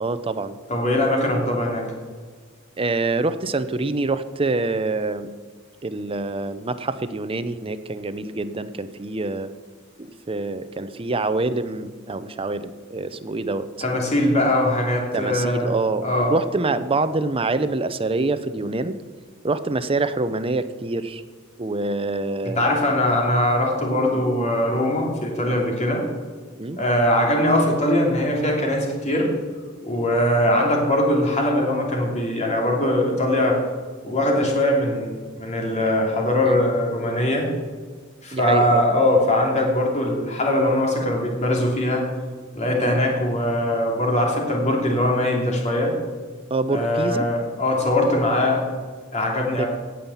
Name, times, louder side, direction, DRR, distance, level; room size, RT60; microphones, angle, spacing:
voice 1, 0.0-0.6 2.8-5.3 5.8-9.5 10.0-13.7 15.1-19.0 19.4-21.2 21.6-22.6 24.1-24.2 26.6-26.8 36.4-36.6 38.3-38.8 42.8-42.9 46.5-47.3 49.6-49.7, right 3 dB, 25° right, 11 dB, 0.6 m, -26 dB
voice 2, 0.7-1.9 13.8-15.7 16.0-16.4 22.4-26.0 26.8-29.3 29.8-33.6 34.0-37.5 38.2-42.0 42.5-45.9 46.7-48.6 49.1-49.7, left 1 dB, 35° left, 0 dB, 2.8 m, -21 dB
17.0 x 5.7 x 7.1 m, 1.5 s
head